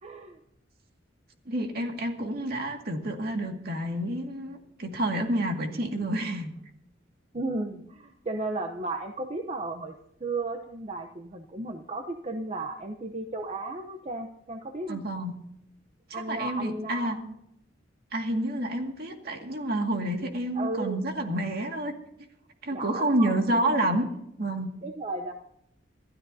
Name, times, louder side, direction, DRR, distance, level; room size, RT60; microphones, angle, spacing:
voice 1, 0.0-0.4 7.3-9.9 10.2-15.0 16.1-17.4 20.5-21.0 22.7-23.8 24.8-25.3, right 2 dB, 35° right, 5 dB, 0.8 m, -34 dB
voice 2, 1.5-6.5 14.9-15.3 16.1-17.2 18.1-21.9 22.6-24.1 24.4-24.7, right 1 dB, 55° right, 3 dB, 2.1 m, -29 dB
26.5 x 13.0 x 2.7 m, 0.78 s
head